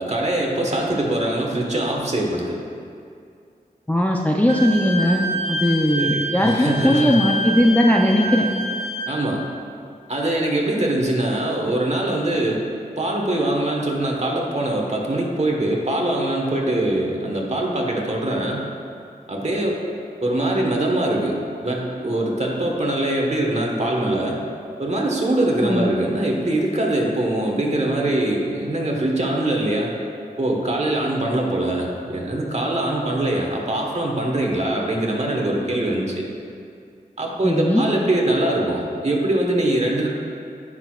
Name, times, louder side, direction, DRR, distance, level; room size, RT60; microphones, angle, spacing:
voice 1, 0.0-2.6 6.0-7.2 9.1-9.4 10.1-12.6 13.0-18.7 19.3-19.8 20.2-24.4 24.8-29.9 30.4-36.3 37.2-40.1, right 1 dB, 45° right, -1 dB, 1.4 m, -23 dB
voice 2, 3.9-8.5 25.6-25.9 37.4-37.9, equal, 10° left, -1 dB, 0.6 m, -19 dB
Wind instrument woodwind instrument, 4.5-9.2, equal, 75° right, 1.0 m, -27 dB
15.5 x 6.2 x 2.5 m, 2.4 s
wide cardioid pair, 75°, 15 cm